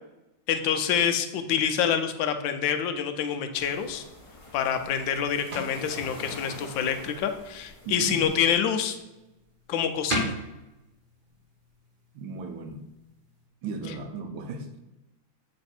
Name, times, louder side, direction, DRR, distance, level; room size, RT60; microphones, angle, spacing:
voice 1, 0.5-4.0 4.5-9.0 9.7-10.3, left 8 dB, 75° left, 7 dB, 1.3 m, -27 dB
sound 1, 3.5-8.6, left 1 dB, 25° left, 0.8 m, -45 dB
sound 2, 4.3-13.5, right 1 dB, 45° right, 0.7 m, -40 dB
voice 2, 7.8-8.3 12.1-12.8 13.6-14.8, right 3 dB, 75° right, 6 dB, 1.5 m, -36 dB
6.9 x 3.2 x 4.3 m, 0.98 s
omnidirectional pair, 2.2 m